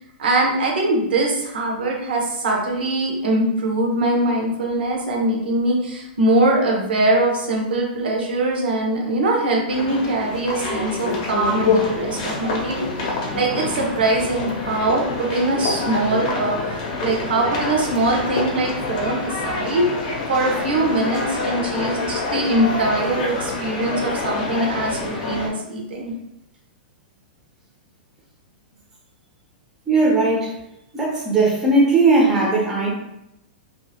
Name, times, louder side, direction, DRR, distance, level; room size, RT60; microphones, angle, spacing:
voice 1, 0.2-19.9 20.3-26.1, right 2 dB, 85° right, -1 dB, 0.9 m, -22 dB
sound 1, 9.7-25.5, left 3 dB, 45° left, 0.7 m, -26 dB
voice 2, 29.9-30.6 30.9-32.9, right 2 dB, 10° right, -5 dB, 0.6 m, -18 dB
2.7 x 2.5 x 2.8 m, 0.84 s
hypercardioid pair, 160°, 5 cm